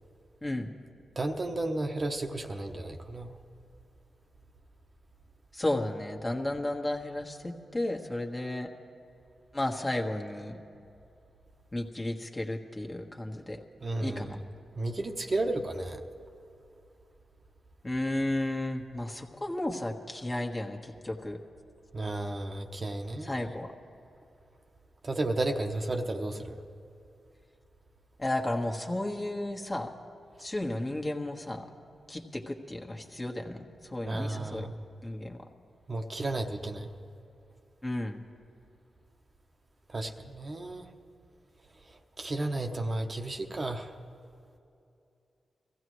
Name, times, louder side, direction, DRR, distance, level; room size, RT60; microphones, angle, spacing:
voice 1, 1.2-3.3 13.8-14.4 14.8-16.0 21.9-23.4 25.0-26.6 34.1-34.7 35.9-36.9 39.9-40.9 42.2-43.9, right 2 dB, 45° right, 3 dB, 1.0 m, -33 dB
voice 2, 5.5-8.7 9.5-10.6 11.7-13.6 14.0-14.4 17.8-21.4 23.2-23.7 28.2-29.9 30.4-31.7 32.1-34.7 35.0-35.4 37.8-38.2, left 1 dB, 25° left, 2 dB, 1.5 m, -33 dB
22.5 x 15.5 x 3.2 m, 2.6 s
cardioid pair, 50°, 0 cm